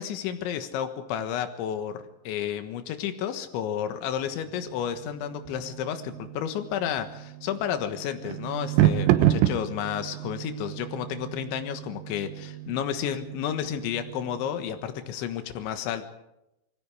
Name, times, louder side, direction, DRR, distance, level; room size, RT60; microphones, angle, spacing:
voice 1, 0.0-16.1, left 9 dB, 80° left, 8 dB, 3.7 m, -31 dB
sound 1, 4.2-15.0, right 13 dB, 80° right, 3.3 m, -30 dB
28.0 x 20.0 x 4.9 m, 0.88 s
omnidirectional pair, 5.4 m